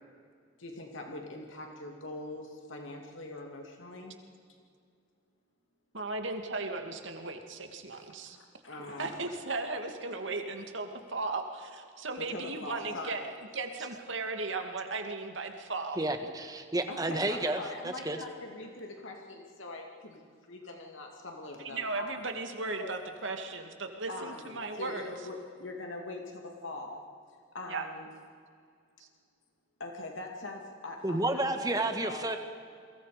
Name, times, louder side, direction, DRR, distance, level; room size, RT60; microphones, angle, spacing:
voice 1, 0.6-4.2 7.9-9.2 12.2-13.2 16.9-22.1 22.8-23.0 24.1-27.0 27.5-28.1 29.8-32.2, left 2 dB, 75° left, 1 dB, 2.6 m, -42 dB
voice 2, 5.9-8.4 9.0-13.3 13.5-16.0 21.6-25.1 27.7-27.9 29.0-29.1, right 3 dB, 70° right, 4 dB, 2.4 m, -36 dB
voice 3, 16.0-17.6 17.8-18.2 31.0-32.4, right 2 dB, 20° right, 6 dB, 1.6 m, -31 dB
29.5 x 23.0 x 5.1 m, 2.3 s
head